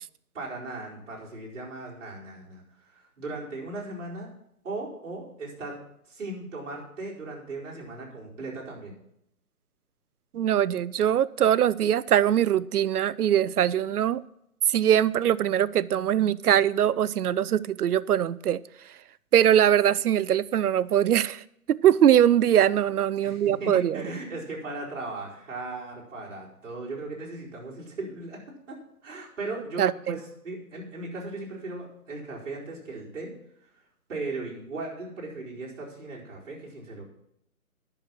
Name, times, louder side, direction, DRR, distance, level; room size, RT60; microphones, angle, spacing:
voice 1, 0.3-4.3 4.6-5.8 6.1-8.9 23.2-28.4 28.7-28.8 29.0-33.3 34.1-37.0, right 2 dB, 55° right, -5 dB, 4.5 m, -37 dB
voice 2, 10.3-14.2 14.7-18.6 19.3-21.4 21.7-24.0 29.8-30.2, right 10 dB, 90° right, 20 dB, 0.6 m, -22 dB
10.5 x 6.2 x 7.5 m, 0.77 s
hypercardioid pair, 170°, 44 cm